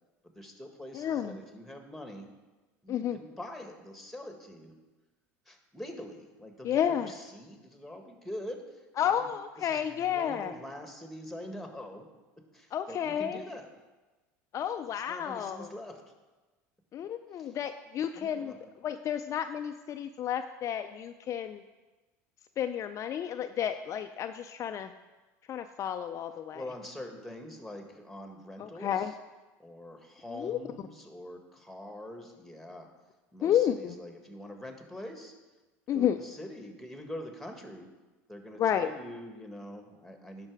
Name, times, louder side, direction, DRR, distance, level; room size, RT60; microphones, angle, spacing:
voice 1, 0.2-2.3 2.8-4.8 5.4-9.3 9.6-12.1 12.5-13.7 14.9-16.0 17.3-17.6 18.1-18.6 26.5-29.1 29.6-32.9 33.3-35.4 35.9-37.9 38.3-40.5, left 1 dB, ahead, 4 dB, 1.6 m, -44 dB
voice 2, 0.9-1.4 2.9-3.2 6.6-7.1 9.0-10.5 12.7-13.4 14.5-15.7 16.9-18.5 18.8-21.6 22.6-24.9 25.5-26.6 28.6-29.1 30.3-30.6 33.4-34.0 35.9-36.2 38.6-38.9, left 9 dB, 40° left, 7 dB, 0.4 m, -31 dB
10.5 x 6.0 x 4.7 m, 1.2 s
supercardioid pair, 95°, 8 cm